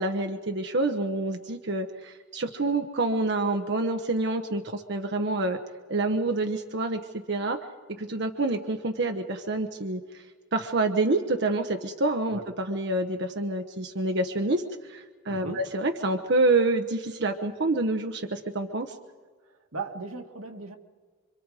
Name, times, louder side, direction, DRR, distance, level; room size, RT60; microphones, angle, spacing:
voice 1, 0.0-5.6 5.9-7.0 7.3-7.6 7.9-10.2 10.5-18.9, right 2 dB, 55° right, 5 dB, 1.0 m, -27 dB
voice 2, 19.7-20.8, right 3 dB, 85° right, 4 dB, 1.8 m, -37 dB
27.0 x 24.5 x 4.9 m, 1.5 s
head